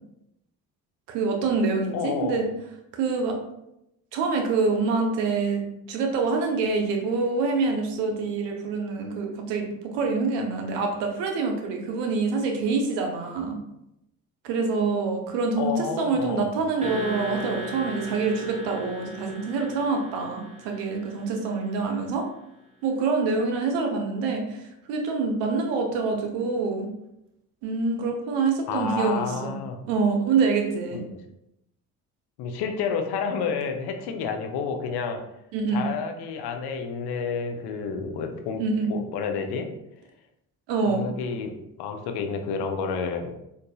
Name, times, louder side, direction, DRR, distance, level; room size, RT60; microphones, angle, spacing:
voice 1, 1.1-2.5 2.9-3.4 4.1-13.6 14.4-22.3 22.8-26.9 27.6-29.6 29.9-31.0 35.5-35.8 38.6-38.9 40.7-41.1, right 4 dB, 80° right, 2 dB, 0.8 m, -26 dB
voice 2, 1.9-2.4 15.6-16.5 28.7-29.8 30.9-31.2 32.4-35.2 35.7-38.6 38.9-39.7 40.9-43.3, left 5 dB, 65° left, 5 dB, 0.6 m, -30 dB
sound 1, 16.8-21.7, equal, 15° right, 0.7 m, -38 dB
3.9 x 2.6 x 2.2 m, 0.82 s
hypercardioid pair, 55°, 42 cm